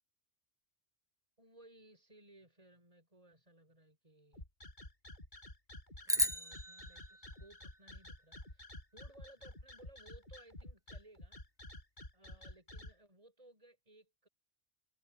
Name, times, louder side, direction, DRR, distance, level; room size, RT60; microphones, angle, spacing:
voice 1, 1.4-4.4 6.0-11.4 12.1-14.3, right 1 dB, 30° right, 6.7 m, -61 dB
sound 1, 4.3-12.9, left 1 dB, 45° left, 5.6 m, -50 dB
sound 2, 6.1-8.5, equal, 5° right, 0.3 m, -37 dB
omnidirectional pair, 1.2 m